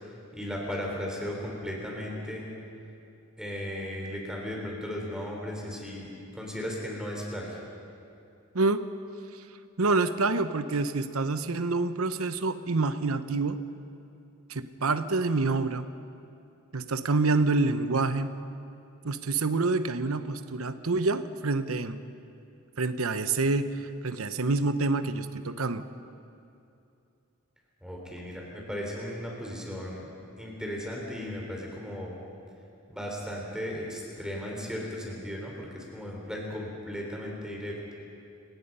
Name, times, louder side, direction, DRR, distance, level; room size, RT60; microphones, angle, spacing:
voice 1, 0.3-2.5 3.4-7.6 27.8-30.1 30.4-32.2 32.9-37.8, equal, 5° right, -2 dB, 4.2 m, -36 dB
voice 2, 8.5-8.9 9.8-13.6 14.5-15.9 16.7-18.3 19.0-22.0 22.8-25.8, right 3 dB, 85° right, 11 dB, 0.9 m, -27 dB
30.0 x 18.5 x 5.6 m, 2.6 s
head